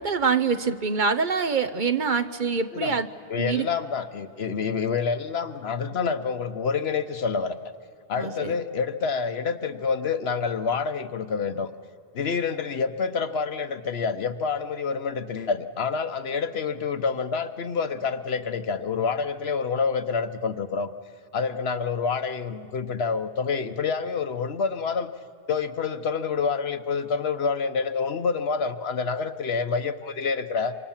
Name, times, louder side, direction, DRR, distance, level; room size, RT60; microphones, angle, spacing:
voice 1, 0.0-3.1 3.4-3.7 8.2-8.5, right 5 dB, 50° right, 8 dB, 0.9 m, -25 dB
voice 2, 3.3-7.6 8.1-11.7 12.1-20.9 21.3-25.1 25.5-30.7, left 5 dB, 70° left, 10 dB, 1.2 m, -27 dB
27.0 x 25.5 x 7.3 m, 2.4 s
omnidirectional pair, 1.1 m